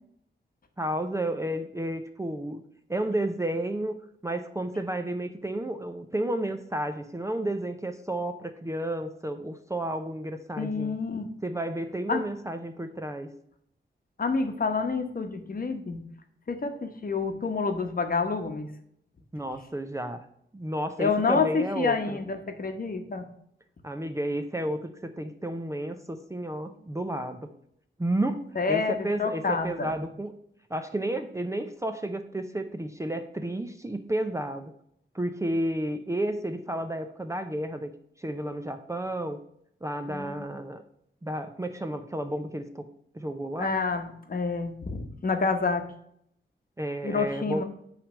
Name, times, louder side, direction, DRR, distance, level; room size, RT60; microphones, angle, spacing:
voice 1, 0.8-2.6 2.9-4.0 4.2-11.0 11.4-13.3 19.3-20.2 20.5-22.0 23.8-27.5 28.0-30.3 30.7-34.7 35.1-37.9 38.2-39.4 39.8-40.8 41.2-42.9 43.1-43.8 46.8-47.6, right 1 dB, 15° right, 7 dB, 0.5 m, -31 dB
voice 2, 10.6-11.3 12.1-12.2 14.2-16.0 16.5-18.7 21.0-23.2 28.5-29.9 40.1-40.5 43.6-45.9 47.0-47.6, left 4 dB, 45° left, 6 dB, 1.0 m, -28 dB
9.2 x 3.3 x 6.2 m, 0.70 s
wide cardioid pair, 145°, 20 cm